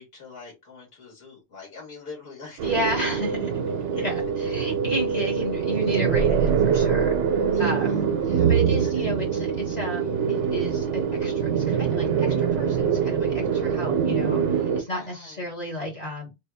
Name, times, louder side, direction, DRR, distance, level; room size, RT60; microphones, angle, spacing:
voice 1, 0.0-2.6 3.9-4.0 7.5-9.1 14.9-15.5, left 4 dB, 55° left, 1.8 m, -44 dB
voice 2, 2.6-3.6 3.9-7.2 7.6-8.2 8.5-16.3, equal, 35° left, 1.2 m, -32 dB
sound 1, 2.6-14.8, right 7 dB, 90° right, 1.0 m, -24 dB
3.3 x 2.3 x 3.4 m
omnidirectional pair, 1.2 m